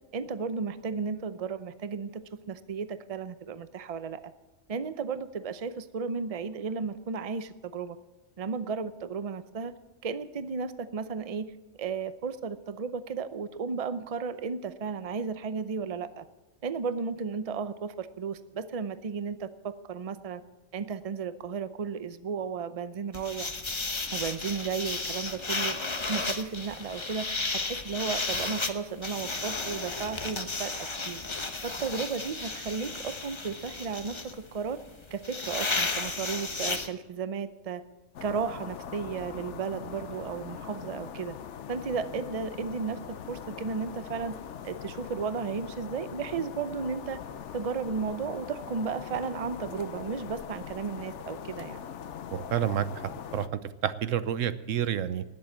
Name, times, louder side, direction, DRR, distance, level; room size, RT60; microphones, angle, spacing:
voice 1, 0.1-2.2 2.5-4.2 4.7-8.0 8.4-9.8 10.0-11.5 11.8-16.2 16.6-20.4 20.7-23.5 24.1-25.8 26.1-30.7 31.0-31.2 31.6-34.8 35.1-37.8 38.2-41.4 41.7-44.4 44.6-47.2 47.5-51.8, right 5 dB, 35° right, 12 dB, 0.7 m, -34 dB
sound 1, 23.1-36.9, left 3 dB, 25° left, 1.0 m, -33 dB
sound 2, 38.1-53.5, left 8 dB, 70° left, 1.0 m, -42 dB
voice 2, 52.3-55.2, right 10 dB, 90° right, 14 dB, 1.1 m, -30 dB
19.5 x 7.7 x 7.3 m, 1.2 s
omnidirectional pair, 1.3 m